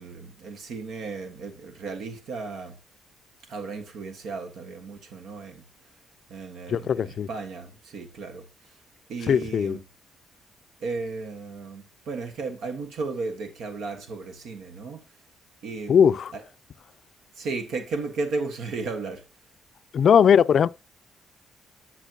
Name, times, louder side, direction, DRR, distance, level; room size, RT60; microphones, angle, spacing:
voice 1, 0.0-2.7 3.5-5.6 6.3-8.5 9.1-9.8 10.8-15.0 15.6-16.4 17.4-19.2, right 3 dB, 75° right, 1.4 m, -34 dB
voice 2, 6.7-7.3 9.3-9.8 15.9-16.3 19.9-20.7, left 7 dB, 55° left, 0.4 m, -19 dB
10.0 x 6.1 x 2.8 m
cardioid pair, 90°, 0 cm